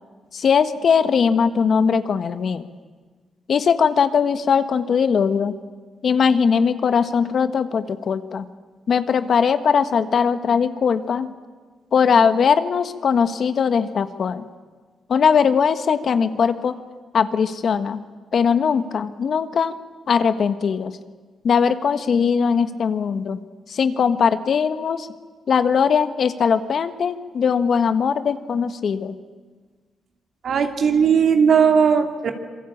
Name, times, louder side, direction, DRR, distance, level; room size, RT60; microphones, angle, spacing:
voice 1, 0.3-2.6 3.5-5.6 6.0-8.4 8.9-11.3 11.9-14.4 15.1-16.7 17.1-18.0 18.3-19.7 20.1-20.9 21.4-23.4 23.7-25.1 25.5-29.1, left 6 dB, 60° left, 11 dB, 1.4 m, -20 dB
voice 2, 30.4-32.3, right 6 dB, 70° right, 6 dB, 2.6 m, -17 dB
26.5 x 23.0 x 8.7 m, 1.4 s
cardioid pair, 75°, 0 cm